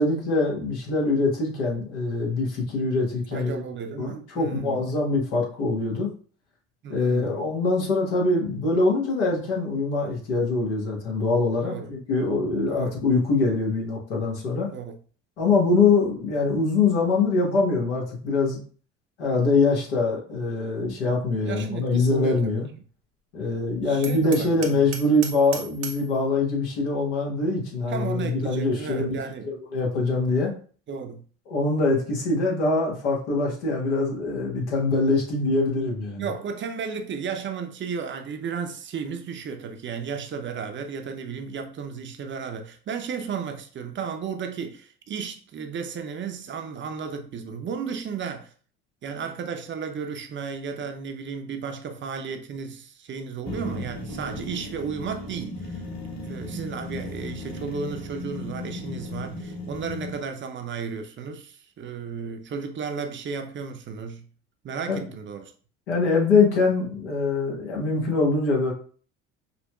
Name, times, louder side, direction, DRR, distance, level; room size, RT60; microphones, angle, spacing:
voice 1, 0.0-3.6 4.0-6.1 6.9-14.7 15.4-18.6 19.2-22.7 23.3-29.2 29.4-30.5 31.5-36.2 64.9-65.0 65.9-68.7, left 3 dB, 85° left, 1.2 m, -23 dB
voice 2, 3.3-4.9 6.8-7.5 11.6-11.9 12.7-13.0 14.7-15.0 21.5-22.6 23.8-24.8 27.9-29.5 30.9-31.2 36.2-48.5 49.0-55.8 56.2-64.3 64.6-65.5, right 6 dB, 35° right, 0.6 m, -34 dB
Hammer, 24.0-26.1, right 8 dB, 90° right, 0.6 m, -37 dB
sound 1, 53.5-60.2, left 2 dB, 50° left, 1.6 m, -36 dB
5.3 x 2.1 x 2.2 m
hypercardioid pair, 70°, 34 cm